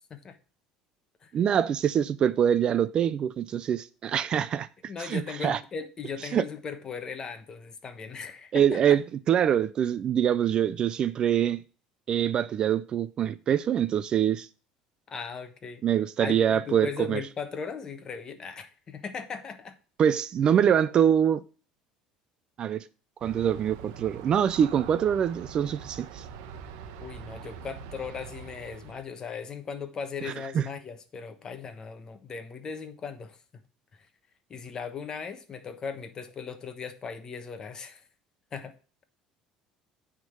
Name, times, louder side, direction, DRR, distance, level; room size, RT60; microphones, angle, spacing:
voice 1, 1.3-5.6 6.3-6.5 8.5-11.6 12.1-14.5 15.8-17.2 20.0-21.4 22.6-22.8 23.2-26.3 30.2-30.7, right 9 dB, 40° right, 0.4 m, -24 dB
voice 2, 4.9-9.0 15.1-15.8 16.2-19.8 27.0-33.4 34.5-38.1 38.5-38.8, left 6 dB, 30° left, 1.1 m, -38 dB
Aircraft, 23.2-29.0, right 7 dB, 80° right, 1.0 m, -43 dB
9.2 x 3.7 x 6.6 m
cardioid pair, 130°, 2 cm